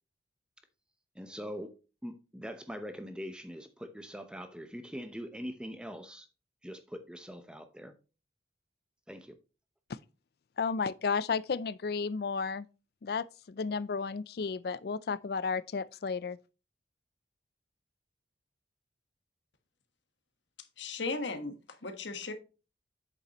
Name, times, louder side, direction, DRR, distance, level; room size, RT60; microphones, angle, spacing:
voice 1, 1.1-1.7 2.0-6.3 6.6-7.9 9.1-9.4, equal, 5° right, 0.7 m, -42 dB
voice 2, 10.6-12.7 13.0-16.4, left 5 dB, 55° left, 0.4 m, -33 dB
voice 3, 20.8-22.3, left 3 dB, 80° left, 1.3 m, -36 dB
8.3 x 6.5 x 3.0 m
head